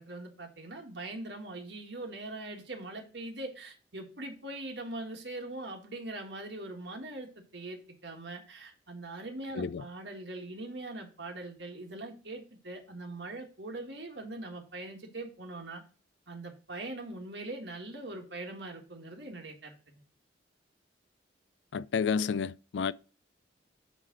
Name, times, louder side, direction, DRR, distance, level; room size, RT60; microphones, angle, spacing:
voice 1, 0.0-15.8 16.3-19.7, right 2 dB, 75° right, 1.8 m, -42 dB
voice 2, 21.7-22.9, left 6 dB, 75° left, 0.4 m, -30 dB
9.0 x 3.3 x 6.0 m
head